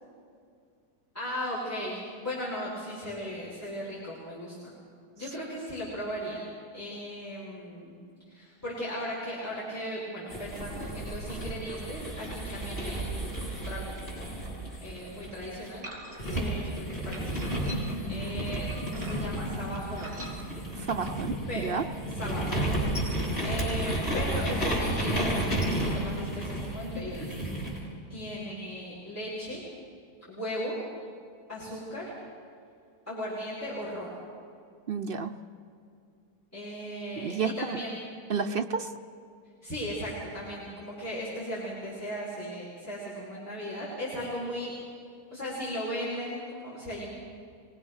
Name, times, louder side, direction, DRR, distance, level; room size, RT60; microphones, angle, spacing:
voice 1, 1.1-4.7 5.2-8.0 8.3-15.8 16.3-20.2 21.5-21.7 22.1-27.3 28.1-29.6 30.3-30.8 31.5-32.1 33.1-34.2 36.5-38.0 39.6-44.7 45.3-47.1, equal, 10° left, -10 dB, 5.8 m, -37 dB
sound 1, 10.3-15.7 16.2-27.8, right 1 dB, 40° left, 6.5 m, -32 dB
sound 2, 15.8-16.4 17.1-18.1 18.7-19.4 19.9-20.4, equal, 80° right, 4.1 m, -43 dB
voice 2, 20.7-21.8 34.9-35.3 37.2-37.8 38.3-38.9, right 5 dB, 55° right, 6 dB, 0.6 m, -31 dB
25.0 x 20.0 x 6.4 m, 2.4 s
omnidirectional pair, 1.7 m